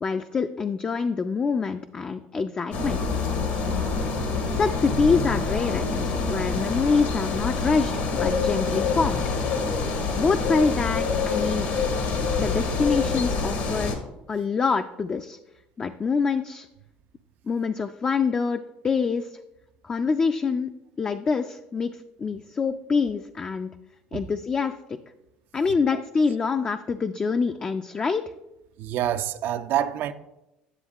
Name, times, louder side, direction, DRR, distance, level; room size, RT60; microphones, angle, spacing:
voice 1, 0.0-3.0 4.6-9.2 10.2-11.7 12.4-14.0 14.3-15.4 15.8-16.7 17.5-19.3 19.8-20.7 21.0-23.7 24.1-24.7 25.5-28.2, left 5 dB, 30° left, 7 dB, 0.4 m, -25 dB
sound 1, 2.7-14.0, left 4 dB, 70° left, 1.4 m, -26 dB
voice 2, 28.8-30.1, right 11 dB, 60° right, 11 dB, 0.4 m, -27 dB
9.9 x 7.1 x 2.4 m, 0.93 s
supercardioid pair, 90°, 4 cm